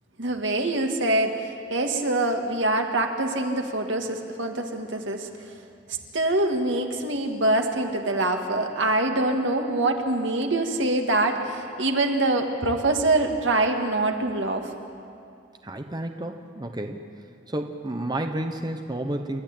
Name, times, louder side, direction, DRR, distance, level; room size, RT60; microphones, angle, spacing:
voice 1, 0.2-5.3 5.9-14.7, right 2 dB, 80° right, 4 dB, 2.0 m, -24 dB
voice 2, 15.6-17.1 17.5-19.4, right 1 dB, 20° right, 5 dB, 0.9 m, -31 dB
29.0 x 13.0 x 8.9 m, 2.4 s
head